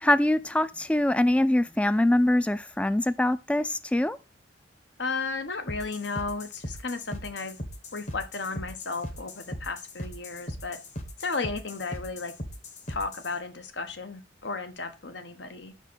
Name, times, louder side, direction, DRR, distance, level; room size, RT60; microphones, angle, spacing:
voice 1, 0.0-4.2, left 1 dB, 5° left, 0.3 m, -23 dB
voice 2, 5.0-7.6 7.9-10.8 11.2-12.3 12.9-15.7, left 4 dB, 75° left, 1.1 m, -34 dB
sound 1, 5.7-13.3, left 1 dB, 40° left, 1.2 m, -39 dB
5.7 x 4.5 x 6.1 m
head